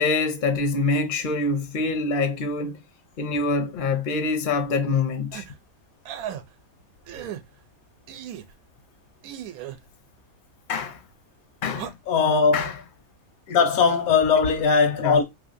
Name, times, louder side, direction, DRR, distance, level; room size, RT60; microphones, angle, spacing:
voice 1, 0.0-2.7 3.2-5.4 10.7-11.0 11.6-11.9 12.5-12.7 13.5-13.6 15.0-15.2, left 3 dB, 55° left, 0.5 m, -25 dB
sound 1, 5.3-5.5 6.0-6.4 7.1-7.4 8.1-8.5 9.2-9.8 11.7-11.9, right 10 dB, 85° right, 1.1 m, -36 dB
voice 2, 12.1-12.7 13.5-15.2, left 5 dB, 80° left, 1.1 m, -19 dB
3.6 x 3.0 x 2.5 m
omnidirectional pair, 1.5 m